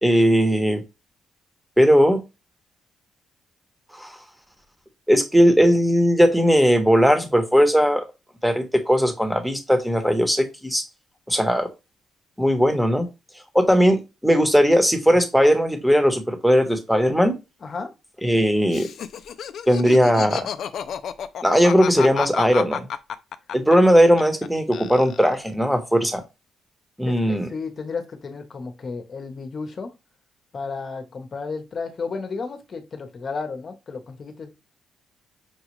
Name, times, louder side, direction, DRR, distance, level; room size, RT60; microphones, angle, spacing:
voice 1, 0.0-0.8 1.8-2.2 3.9-4.1 5.1-8.0 8.4-10.8 11.3-11.7 12.4-13.1 13.5-17.3 18.2-18.9 19.7-20.5 21.4-22.9 23.5-26.2 27.0-27.5, equal, ahead, 6 dB, 1.1 m, -18 dB
Laughter, 18.7-24.5 24.7-25.5, left 8 dB, 65° left, 0.4 m, -31 dB
voice 2, 27.0-29.9 30.5-34.7, left 4 dB, 45° left, 6 dB, 1.0 m, -33 dB
6.1 x 2.4 x 3.1 m, 0.25 s
cardioid pair, 90°, 0 cm